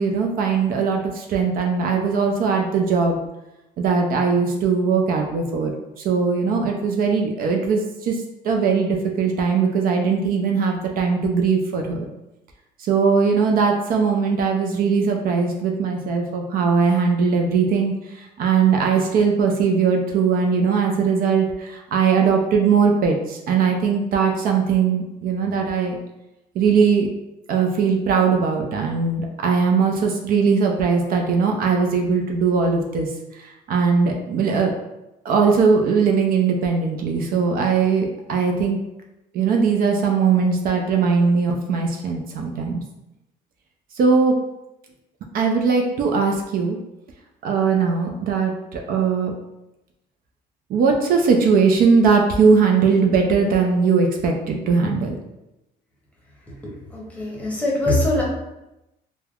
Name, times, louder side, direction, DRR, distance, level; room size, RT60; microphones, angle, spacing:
voice 1, 0.0-3.2 3.8-12.1 12.8-26.0 26.6-27.1 27.5-34.7 35.2-38.8 39.3-42.8 43.9-44.4 45.3-46.8 47.4-49.3 50.7-55.2, right 5 dB, 60° right, 2 dB, 0.4 m, -20 dB
voice 2, 56.9-58.2, left 1 dB, 10° left, -4 dB, 0.8 m, -22 dB
3.2 x 2.1 x 2.3 m, 0.93 s
cardioid pair, 110°, 17 cm